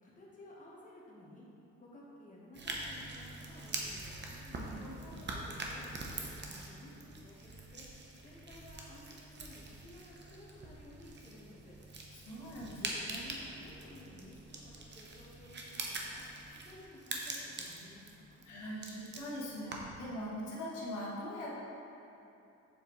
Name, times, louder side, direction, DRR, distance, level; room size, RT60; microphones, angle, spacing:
voice 1, 0.0-1.5 1.8-4.1 4.9-7.9 8.2-11.8 12.6-16.2 16.6-18.4, left 1 dB, 25° left, -5 dB, 1.2 m, -55 dB
sound 1, 2.5-20.1, right 2 dB, 35° right, 0.8 m, -44 dB
voice 2, 4.4-5.4 12.1-13.3 18.4-21.5, equal, 85° left, -5 dB, 1.2 m, -42 dB
6.8 x 4.5 x 3.1 m, 2.9 s
cardioid pair, 90°, 30 cm